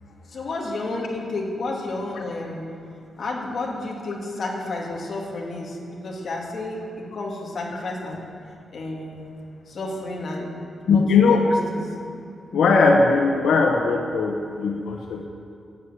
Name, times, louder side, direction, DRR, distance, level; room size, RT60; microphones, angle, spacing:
voice 1, 0.3-2.6 3.2-8.2 8.7-9.3 9.7-10.6 10.9-11.8, left 2 dB, 45° left, -2 dB, 2.2 m, -31 dB
voice 2, 10.9-11.4 12.5-15.3, left 4 dB, 85° left, 1 dB, 1.2 m, -19 dB
12.0 x 8.5 x 8.6 m, 2.4 s
wide cardioid pair, 175°, 0 cm